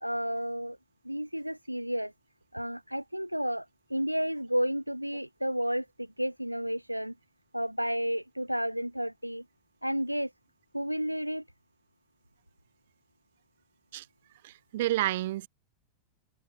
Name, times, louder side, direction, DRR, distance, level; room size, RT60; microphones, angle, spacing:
voice 1, 0.0-0.8 1.0-2.1 2.5-7.1 7.5-9.4 9.8-10.3 10.7-11.4, equal, 90° right, 1.2 m, -31 dB
voice 2, 14.4-15.5, right 15 dB, 55° right, 7.3 m, -30 dB
figure-of-eight pair, 90°, 0 cm